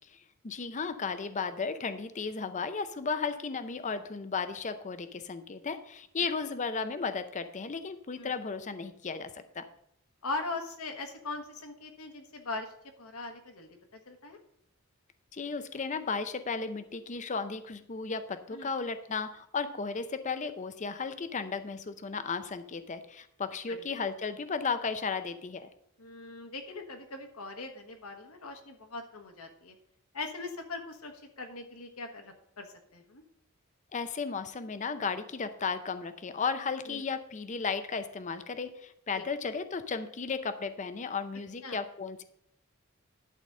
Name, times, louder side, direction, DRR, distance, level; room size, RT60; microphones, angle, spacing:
voice 1, 0.4-9.6 15.3-25.7 33.9-42.2, left 5 dB, 35° left, 11 dB, 0.6 m, -34 dB
voice 2, 10.2-12.7 13.0-13.7 14.1-14.4 18.5-18.7 23.7-24.1 26.0-29.7 30.1-33.2 36.9-37.0 39.2-39.3 41.6-41.8, left 3 dB, 80° left, 5 dB, 1.5 m, -40 dB
11.5 x 4.0 x 7.4 m, 0.73 s
head